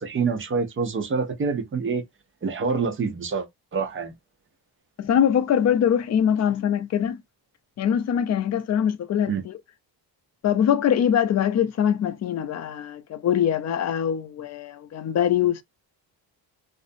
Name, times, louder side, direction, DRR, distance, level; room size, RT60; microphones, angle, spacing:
voice 1, 0.0-2.0 2.4-4.1 9.3-9.4, right 5 dB, 30° right, 0.6 m, -26 dB
voice 2, 5.0-7.2 7.8-9.6 10.4-15.6, left 9 dB, 40° left, 0.4 m, -23 dB
2.5 x 2.0 x 2.6 m
cardioid pair, 120°, 42 cm